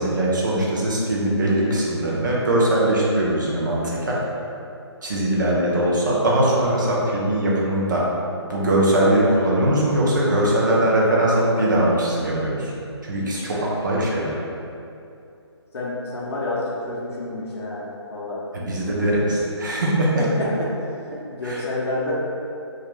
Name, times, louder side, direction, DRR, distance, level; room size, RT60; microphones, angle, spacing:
voice 1, 0.0-4.2 5.0-8.0 8.5-12.7 13.0-14.4 18.5-20.2 21.4-21.6, right 1 dB, 40° right, -5 dB, 0.5 m, -21 dB
voice 2, 15.7-18.4 20.2-20.7 21.3-22.1, left 2 dB, 65° left, -5 dB, 0.5 m, -29 dB
2.3 x 2.1 x 2.9 m, 2.6 s
hypercardioid pair, 175°, 15 cm